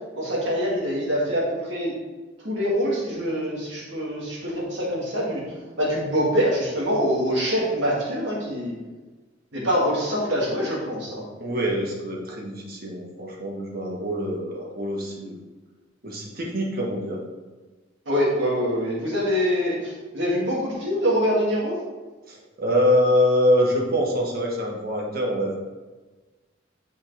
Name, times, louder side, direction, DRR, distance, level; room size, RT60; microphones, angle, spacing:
voice 1, 0.1-1.9 2.4-5.4 5.8-8.7 9.5-11.2 18.1-21.8, equal, 70° right, -5 dB, 2.4 m, -24 dB
voice 2, 11.4-15.4 16.0-17.2 22.3-25.6, equal, 50° right, -1 dB, 1.5 m, -24 dB
8.6 x 5.4 x 3.5 m, 1.3 s
head